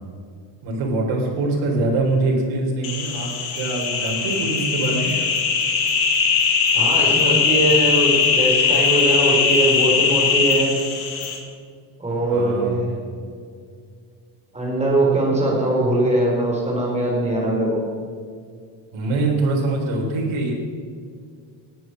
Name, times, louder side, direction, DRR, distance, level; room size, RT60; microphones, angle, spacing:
voice 1, 0.6-5.1 12.3-12.8 18.9-20.5, right 2 dB, 80° right, -1 dB, 3.9 m, -23 dB
sound 1, 2.8-11.4, left 5 dB, 80° left, 2.8 m, -20 dB
voice 2, 6.7-10.7 12.0-13.0 14.5-17.8, right 1 dB, 15° right, -3 dB, 4.4 m, -21 dB
19.0 x 9.5 x 6.3 m, 2.2 s
cardioid pair, 165°, 47 cm